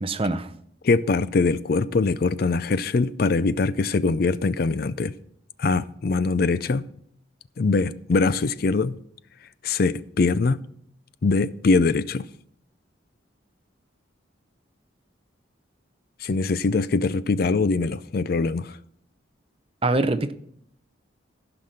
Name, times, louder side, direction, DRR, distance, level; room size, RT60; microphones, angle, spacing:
voice 1, 0.0-0.5 19.8-20.3, right 2 dB, 30° right, 0.7 m, -23 dB
voice 2, 0.8-5.1 5.6-6.9 7.6-9.0 9.6-10.6 11.2-12.2 16.2-18.8, left 3 dB, 50° left, 0.4 m, -22 dB
15.0 x 5.9 x 6.6 m
head